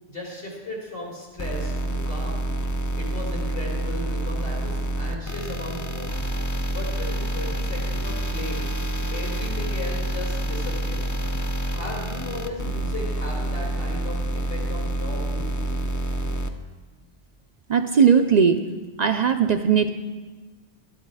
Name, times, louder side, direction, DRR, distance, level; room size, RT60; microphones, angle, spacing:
voice 1, 0.1-2.4 3.0-6.1 6.7-8.8 9.1-11.0 11.7-15.8, left 1 dB, 60° left, -3 dB, 3.8 m, -36 dB
sound 1, 1.4-16.5, right 1 dB, 20° left, 0.5 m, -27 dB
voice 2, 17.7-18.6 19.0-19.9, right 6 dB, 55° right, 7 dB, 0.5 m, -18 dB
12.0 x 9.8 x 4.7 m, 1.3 s
omnidirectional pair, 1.1 m